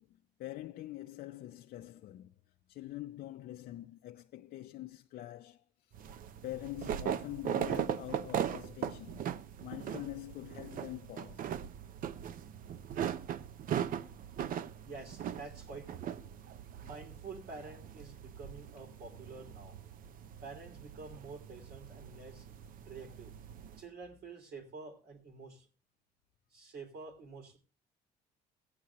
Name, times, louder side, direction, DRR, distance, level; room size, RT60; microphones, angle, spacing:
voice 1, 0.0-2.3 2.7-5.9 6.4-9.3 9.6-11.5, left 15 dB, 60° left, 0.5 m, -45 dB
sound 1, 5.9-23.8, right 9 dB, 55° right, 0.6 m, -40 dB
voice 2, 14.8-16.2 16.8-19.8 20.4-22.5 22.9-23.3 23.8-25.7 26.5-27.6, right 4 dB, 75° right, 2.9 m, -48 dB
16.5 x 9.5 x 2.9 m
cardioid pair, 110°, 17 cm